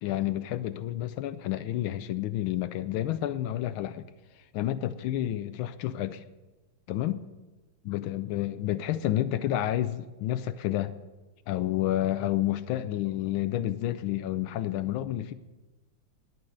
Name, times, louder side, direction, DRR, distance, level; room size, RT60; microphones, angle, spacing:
voice 1, 0.0-4.1 4.3-6.2 6.9-7.2 7.8-10.9 11.5-15.3, left 13 dB, 75° left, 13 dB, 1.3 m, -30 dB
11.0 x 9.5 x 7.9 m, 1.2 s
omnidirectional pair, 2.4 m